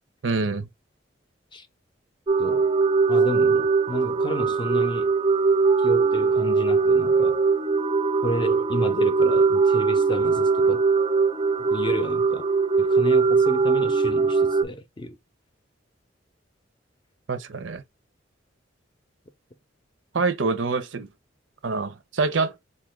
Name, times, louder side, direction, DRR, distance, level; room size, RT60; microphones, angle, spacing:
voice 1, 0.2-0.7 17.3-17.8 20.1-21.1 21.6-22.6, right 4 dB, 80° right, 0.6 m, -25 dB
sound 1, 2.3-14.6, right 4 dB, 25° right, 0.4 m, -21 dB
voice 2, 2.4-2.7 3.1-5.1 5.8-7.4 8.2-10.8 11.6-12.5 12.8-15.2, left 1 dB, 25° left, 0.6 m, -31 dB
4.1 x 2.5 x 3.1 m
head